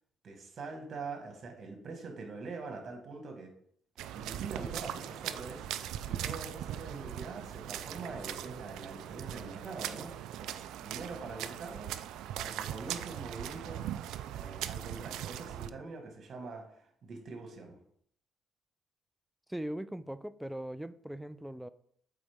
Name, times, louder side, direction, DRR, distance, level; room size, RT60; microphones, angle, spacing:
voice 1, 0.2-3.5 4.1-11.9 12.3-13.9 14.3-17.8, right 3 dB, 50° right, 4 dB, 1.7 m, -44 dB
sound 1, 4.0-15.7, right 11 dB, 85° right, 0.3 m, -40 dB
voice 2, 19.5-21.7, right 1 dB, 5° right, 14 dB, 0.3 m, -40 dB
7.8 x 4.2 x 3.6 m, 0.65 s
cardioid pair, 95°, 0 cm